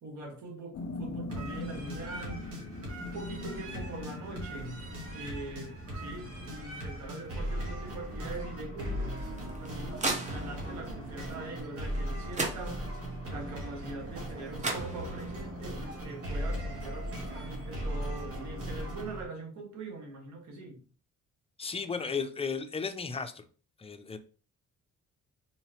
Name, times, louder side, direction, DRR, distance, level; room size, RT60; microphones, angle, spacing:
voice 1, 0.0-2.5 3.0-4.8 5.1-9.2 9.6-12.8 13.3-20.8, right 2 dB, 70° right, 2 dB, 1.6 m, -43 dB
sound 1, 0.7-7.6, left 2 dB, 55° left, 0.7 m, -43 dB
sound 2, 1.3-19.3, equal, 50° right, 1.8 m, -38 dB
sound 3, 9.2-10.8 12.0-12.1 12.3-13.2 14.3-14.4 14.6-15.5, right 2 dB, 25° right, 0.9 m, -35 dB
voice 2, 21.6-23.5 23.8-24.2, left 5 dB, 20° left, 8 dB, 0.5 m, -34 dB
3.8 x 3.0 x 2.9 m, 0.37 s
cardioid pair, 90°, 30 cm